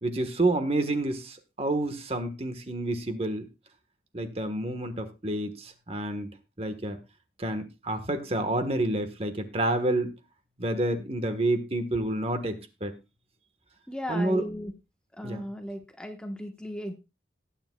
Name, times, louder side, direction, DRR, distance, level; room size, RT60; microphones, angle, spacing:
voice 1, 0.0-3.5 4.1-6.3 6.6-7.0 7.4-10.2 10.6-12.9 14.1-14.5 15.2-15.4, right 1 dB, 35° right, 8 dB, 1.3 m, -29 dB
voice 2, 13.9-14.7 15.2-16.9, equal, 5° left, 4 dB, 1.1 m, -36 dB
19.5 x 8.8 x 2.3 m, 0.26 s
head